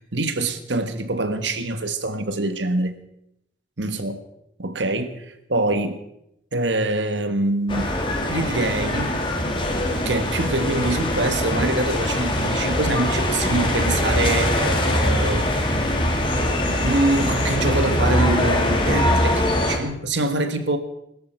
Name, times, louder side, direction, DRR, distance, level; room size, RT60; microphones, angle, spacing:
voice 1, 0.1-2.9 3.8-4.2 4.6-6.0 6.5-7.9 8.3-9.2 10.0-15.4 16.8-20.8, right 2 dB, 85° right, 9 dB, 1.6 m, -24 dB
sound 1, 7.7-19.8, left 1 dB, 25° left, 2.1 m, -22 dB
21.5 x 13.0 x 4.6 m, 0.81 s
head